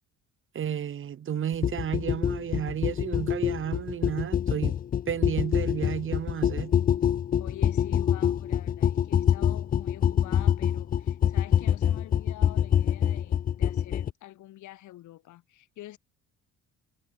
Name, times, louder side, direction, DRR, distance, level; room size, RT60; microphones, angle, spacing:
voice 1, 0.5-4.8 5.1-6.7, right 9 dB, 40° right, 1.3 m, -32 dB
sound 1, 1.6-14.1, left 9 dB, 30° left, 0.4 m, -25 dB
voice 2, 7.4-16.0, left 15 dB, 70° left, 2.8 m, -47 dB
cardioid pair, 115°, 31 cm